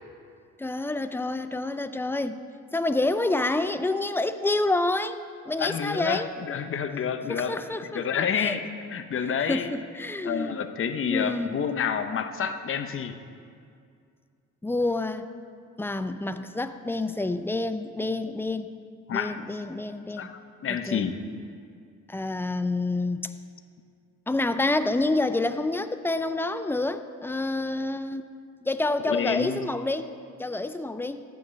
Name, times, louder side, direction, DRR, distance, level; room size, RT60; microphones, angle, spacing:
voice 1, 0.6-2.4 2.7-5.2 5.5-6.3 7.3-8.6 9.5-10.6 11.1-11.5 14.6-15.3 15.8-18.7 19.1-20.3 20.9-21.1 22.1-23.3 24.3-28.2 28.6-30.1 30.4-31.2, left 2 dB, 10° left, 9 dB, 0.4 m, -28 dB
voice 2, 5.6-7.6 7.9-8.6 8.9-9.7 10.2-13.1 19.1-19.4 20.2-21.2 29.0-29.6, left 7 dB, 45° left, 7 dB, 0.7 m, -29 dB
13.5 x 9.2 x 3.2 m, 2.3 s
cardioid pair, 90°, 30 cm